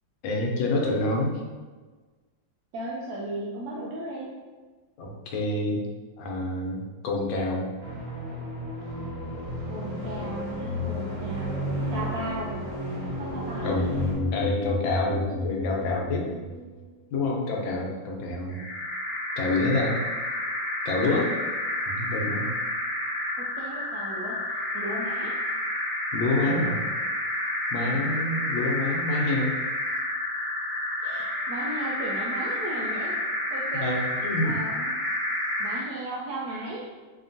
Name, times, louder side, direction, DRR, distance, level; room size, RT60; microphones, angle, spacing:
voice 1, 0.2-1.4 5.0-5.8 6.2-7.7 13.6-13.8 14.3-16.3 17.1-18.6 19.4-20.0 20.8-21.3 21.9-22.5 26.1-26.8 27.7-29.5 33.8-34.6, left 2 dB, 85° left, 0 dB, 1.4 m, -27 dB
voice 2, 2.7-4.3 9.7-12.7 13.2-13.8 23.4-24.4 24.7-25.4 27.8-28.1 31.0-33.1 33.5-34.0 34.4-34.9 35.6-36.9, right 1 dB, 75° right, -5 dB, 1.0 m, -36 dB
sound 1, 7.8-14.1, equal, 40° right, 1.0 m, -32 dB
sound 2, 13.6-16.9, left 2 dB, 70° left, 1.0 m, -30 dB
sound 3, 18.5-35.9, left 1 dB, 25° left, 1.2 m, -30 dB
4.2 x 2.9 x 2.7 m, 1.3 s
omnidirectional pair, 2.1 m